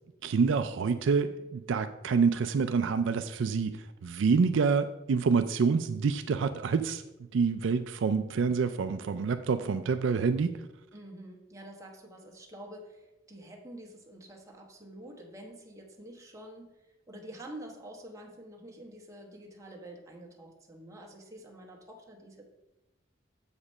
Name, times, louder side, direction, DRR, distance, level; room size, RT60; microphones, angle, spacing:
voice 1, 0.2-7.0 7.3-10.6, right 5 dB, 70° right, 10 dB, 0.4 m, -27 dB
voice 2, 10.9-22.5, right 1 dB, 15° right, 0 dB, 1.1 m, -48 dB
7.4 x 5.0 x 5.4 m, 0.98 s
head